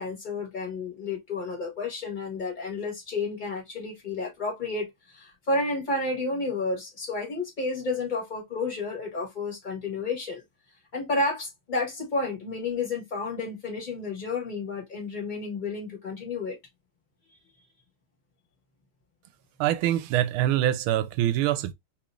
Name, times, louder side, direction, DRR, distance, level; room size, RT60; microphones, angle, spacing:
voice 1, 0.0-10.4 10.9-16.6, left 3 dB, 25° left, 1.5 m, -31 dB
voice 2, 19.6-21.7, right 12 dB, 80° right, 1.4 m, -24 dB
3.8 x 3.1 x 2.4 m
omnidirectional pair, 2.3 m